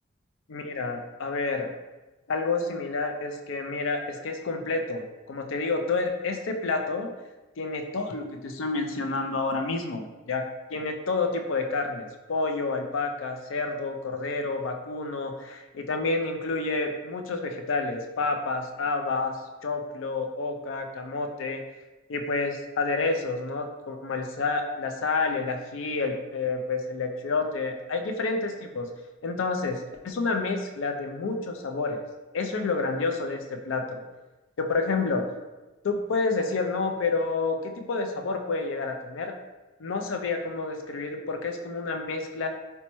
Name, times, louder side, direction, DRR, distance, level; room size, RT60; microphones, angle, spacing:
voice 1, 0.5-1.7 2.3-7.1 7.6-10.4 10.7-19.4 19.6-21.6 22.1-28.9 29.2-32.0 32.3-34.0 34.6-35.2 35.8-39.3 39.8-42.5, left 3 dB, 70° left, 5 dB, 0.4 m, -29 dB
3.0 x 2.2 x 4.0 m, 1.1 s
head